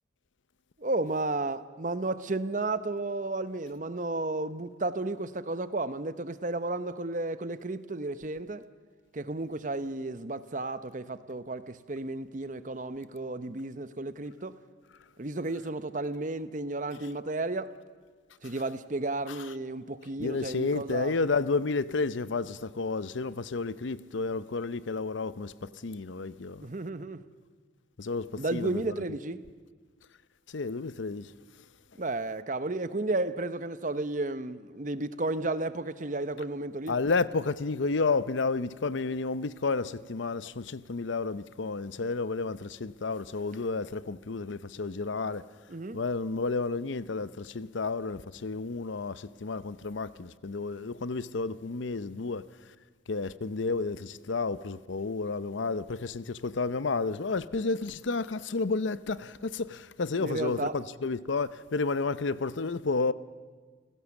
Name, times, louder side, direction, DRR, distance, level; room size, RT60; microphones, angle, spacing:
voice 1, 0.8-8.7 9.1-14.6 15.2-17.8 18.4-21.1 26.6-27.2 28.4-29.4 32.0-36.9 45.7-46.0 60.2-60.7, right 2 dB, 40° right, 0.8 m, -33 dB
voice 2, 20.2-25.5 25.8-26.6 28.0-28.2 28.5-28.8 30.5-31.2 36.9-45.4 45.9-49.1 49.4-52.4 53.1-63.1, left 3 dB, 75° left, 0.7 m, -31 dB
28.5 x 16.5 x 7.2 m
head